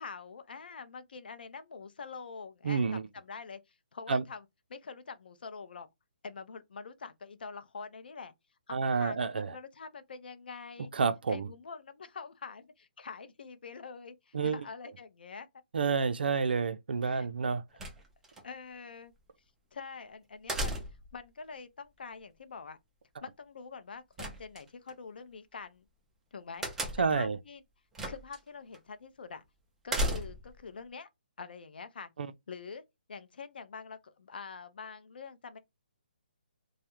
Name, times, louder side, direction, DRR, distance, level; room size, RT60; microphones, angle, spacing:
voice 1, 0.0-5.9 6.2-8.3 8.7-10.9 11.3-15.5 17.0-17.3 18.4-19.1 19.7-20.8 21.1-22.8 23.2-25.8 26.3-26.9 27.1-27.6 28.1-29.4 29.8-31.1 31.4-32.1 32.5-32.8 33.1-35.6, left 5 dB, 70° left, 0.5 m, -45 dB
voice 2, 2.6-3.0 4.1-4.2 8.7-9.5 10.9-11.5 14.3-14.6 15.7-17.6 27.0-27.4 32.2-32.3, right 5 dB, 75° right, 0.4 m, -29 dB
sound 1, 17.8-18.4 20.5-21.2 24.2-24.9 26.6-27.2 27.9-28.4 28.7-28.8 29.9-30.6, right 1 dB, 5° right, 0.4 m, -34 dB
2.3 x 2.0 x 2.8 m
hypercardioid pair, 160°, 5 cm